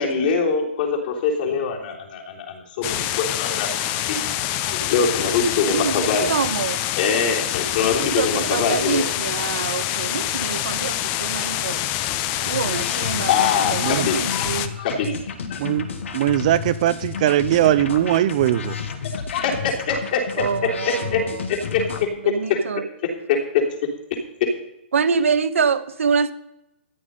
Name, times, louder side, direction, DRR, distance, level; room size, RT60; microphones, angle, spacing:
voice 1, 0.0-3.7 4.1-4.2 4.7-6.3 7.0-9.1 13.3-15.6 19.3-20.2 20.9-21.2 21.5-22.1 22.5-22.6 23.3-23.4, left 5 dB, 40° left, 3.4 m, -23 dB
sound 1, 2.8-14.7, left 12 dB, 20° left, 0.6 m, -26 dB
voice 2, 5.6-6.8 8.2-11.8 12.4-14.8 20.4-21.5 22.2-22.8 24.9-26.3, right 6 dB, 90° right, 1.3 m, -25 dB
sound 2, 12.5-22.1, left 6 dB, 70° left, 2.0 m, -32 dB
voice 3, 13.8-14.1 14.8-14.9 15.5-18.8, right 12 dB, 35° right, 0.5 m, -20 dB
14.0 x 9.7 x 5.4 m
hypercardioid pair, 165°, 7 cm